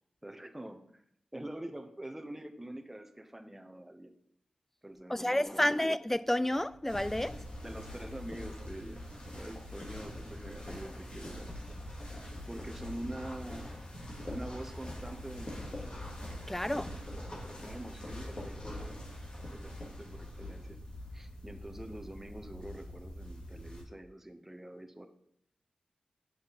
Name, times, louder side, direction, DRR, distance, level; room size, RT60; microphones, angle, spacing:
voice 1, 0.2-1.0 1.3-4.1 4.8-5.8 7.6-11.6 11.9-12.0 12.5-13.7 14.3-16.0 16.6-19.0 19.5-20.8 21.1-25.1, right 1 dB, 15° right, 1.0 m, -45 dB
voice 2, 5.1-7.4 16.5-16.9, left 1 dB, 10° left, 0.3 m, -30 dB
sound 1, 6.9-23.8, left 1 dB, 45° left, 2.5 m, -43 dB
9.1 x 6.2 x 4.2 m
cardioid pair, 60°, 2 cm